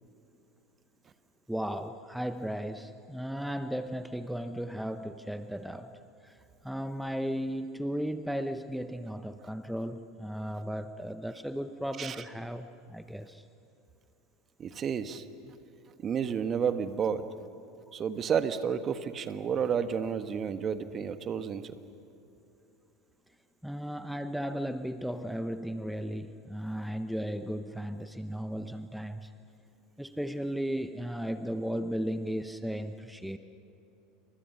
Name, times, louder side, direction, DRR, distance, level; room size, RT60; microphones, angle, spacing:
voice 1, 1.5-5.9 6.2-6.4 6.6-13.5 23.6-29.3 30.0-33.4, equal, ahead, 10 dB, 0.9 m, -35 dB
voice 2, 14.6-15.2 16.0-17.2 17.9-21.7, right 7 dB, 35° right, 10 dB, 1.4 m, -31 dB
29.0 x 25.5 x 5.7 m, 2.8 s
hypercardioid pair, 80°, 0 cm